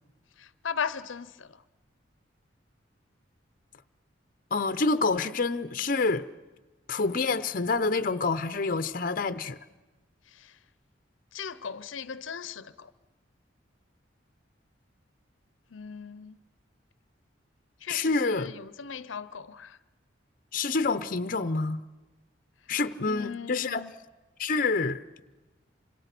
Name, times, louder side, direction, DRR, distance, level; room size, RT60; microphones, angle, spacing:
voice 1, 0.4-1.6 10.3-10.5 11.3-12.9 15.7-16.4 17.8-19.8 23.1-23.9, left 6 dB, 85° left, 0.7 m, -38 dB
voice 2, 4.5-6.3 6.9-9.6 17.9-18.5 20.5-21.8 22.7-23.9 24.4-25.0, left 3 dB, 45° left, 0.7 m, -27 dB
27.5 x 26.5 x 6.0 m
head